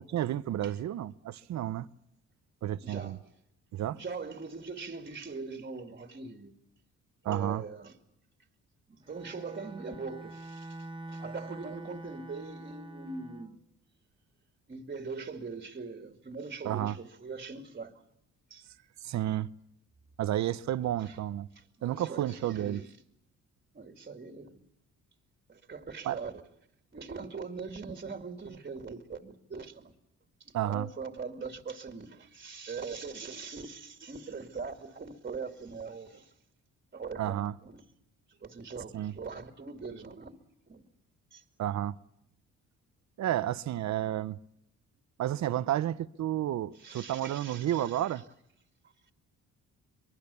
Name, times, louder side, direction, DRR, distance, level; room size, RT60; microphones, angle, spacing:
voice 1, 0.0-1.9 2.6-3.2 3.7-4.0 7.2-7.6 16.6-16.9 19.0-19.5 20.2-21.5 21.8-22.8 26.0-26.2 30.5-30.9 37.2-37.5 38.9-39.1 41.6-41.9 43.2-44.4 45.2-48.2, right 12 dB, 65° right, 0.8 m, -31 dB
voice 2, 2.8-3.2 3.9-6.5 7.2-8.0 8.9-13.6 14.7-17.9 18.5-18.7 21.0-21.2 21.5-22.9 23.7-24.6 25.5-26.4 26.9-29.9 30.4-36.3 36.9-37.8 38.3-40.9 41.3-41.4 46.7-48.1, right 4 dB, 30° right, 2.3 m, -42 dB
Bowed string instrument, 9.0-13.6, right 2 dB, 15° right, 1.1 m, -45 dB
24.0 x 23.0 x 7.0 m
cardioid pair, 90°, 30 cm